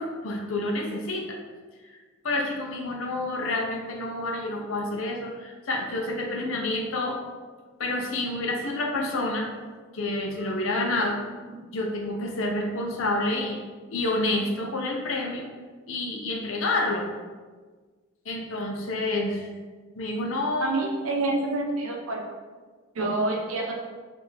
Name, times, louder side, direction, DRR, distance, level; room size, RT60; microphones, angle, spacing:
voice 1, 0.0-1.4 1.9-2.0 2.2-7.2 7.8-9.5 9.9-11.2 11.7-13.6 13.9-15.5 15.9-17.1 18.3-19.5 20.0-20.7, left 2 dB, 75° left, 1 dB, 0.7 m, -28 dB
voice 2, 20.6-22.3 22.9-23.7, right 2 dB, 85° right, 1 dB, 0.7 m, -27 dB
4.4 x 2.6 x 3.4 m, 1.4 s
head